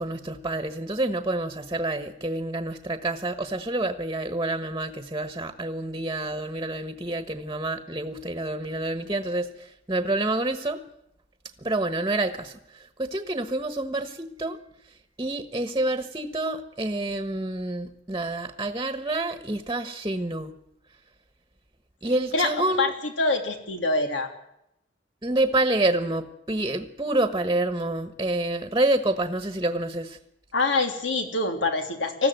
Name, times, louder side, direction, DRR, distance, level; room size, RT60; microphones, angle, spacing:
voice 1, 0.0-9.5 9.9-10.8 11.6-12.5 13.0-14.6 15.2-20.5 22.0-22.9 25.2-30.2, right 2 dB, 20° right, 9 dB, 1.3 m, -28 dB
voice 2, 22.8-24.3 30.5-32.3, left 3 dB, 85° left, 5 dB, 3.2 m, -25 dB
20.0 x 14.5 x 9.2 m, 0.80 s
head